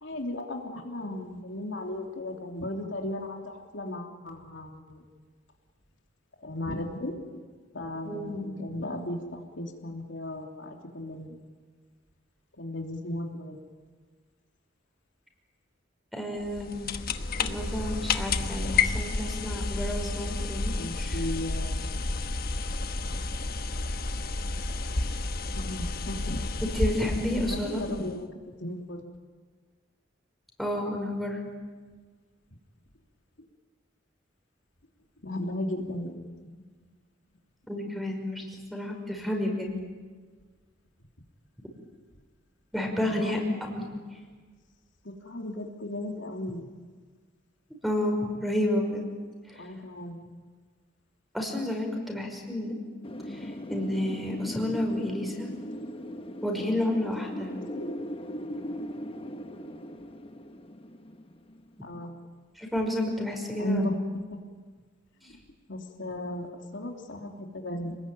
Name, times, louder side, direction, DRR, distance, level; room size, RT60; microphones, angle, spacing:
voice 1, 0.0-5.0 6.4-7.2 7.7-11.4 12.5-13.6 20.8-22.0 25.6-26.4 27.1-29.0 35.2-36.6 42.9-43.3 45.0-46.7 49.5-50.3 57.5-57.9 61.8-62.2 63.6-64.0 64.3-64.4 65.2-65.3 65.7-68.0, left 1 dB, 75° left, 2 dB, 3.1 m, -36 dB
voice 2, 8.0-8.5 16.1-16.9 17.4-21.2 26.6-27.8 30.6-31.5 37.7-38.4 38.7-39.7 42.7-43.9 47.8-49.1 49.5-49.7 51.3-52.7 53.3-55.5 56.4-57.5 62.6-63.9, left 1 dB, ahead, 2 dB, 5.5 m, -30 dB
sound 1, 16.4-28.2, left 3 dB, 50° left, 1.2 m, -31 dB
Wind, 53.0-61.7, equal, 30° left, 1.2 m, -38 dB
29.0 x 20.5 x 9.1 m, 1.5 s
head